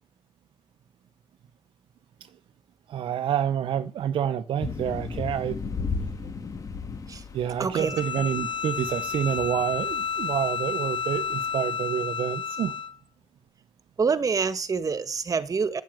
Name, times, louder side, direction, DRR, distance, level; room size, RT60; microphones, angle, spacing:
voice 1, 2.9-5.6 7.3-12.7, right 9 dB, 75° right, 0.8 m, -28 dB
sound 1, 4.6-11.6, left 4 dB, 40° left, 2.1 m, -36 dB
voice 2, 7.6-8.0 14.0-15.8, right 5 dB, 40° right, 1.6 m, -26 dB
Bowed string instrument, 7.7-13.0, left 6 dB, 65° left, 1.4 m, -31 dB
10.5 x 7.4 x 9.1 m
cardioid pair, 80°, 9 cm